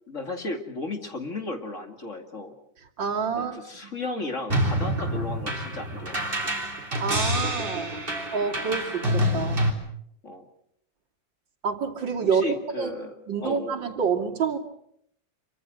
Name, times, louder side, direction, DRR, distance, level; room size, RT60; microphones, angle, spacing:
voice 1, 0.1-2.5 3.3-6.2 10.2-10.4 12.3-13.1 13.4-13.7, left 2 dB, 40° left, 5 dB, 2.7 m, -34 dB
voice 2, 3.0-3.6 3.8-3.9 7.0-8.0 8.3-9.6 11.6-12.4 12.8-12.9 13.3-14.6, right 6 dB, 75° right, 2 dB, 3.3 m, -27 dB
sound 1, 4.5-9.7, equal, 30° right, 3.7 m, -27 dB
27.0 x 24.5 x 6.5 m, 0.72 s
omnidirectional pair, 2.0 m